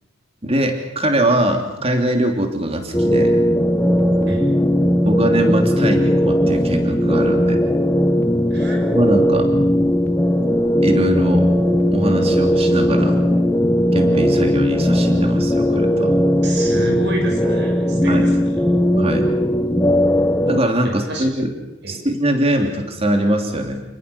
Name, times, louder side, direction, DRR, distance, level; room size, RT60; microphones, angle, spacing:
voice 1, 0.4-3.4 5.0-7.6 8.9-9.5 10.8-11.5 11.9-13.2 13.9-16.2 18.1-18.2 19.0-19.3 20.5-21.5 21.9-23.8, right 1 dB, 30° right, 4 dB, 3.1 m, -21 dB
sound 1, 2.9-20.6, equal, 10° left, 1.3 m, -17 dB
voice 2, 8.5-8.8 16.4-18.6 20.8-21.3 21.8-22.0, right 1 dB, 60° right, 2 dB, 8.0 m, -29 dB
28.5 x 20.5 x 7.0 m, 0.96 s
head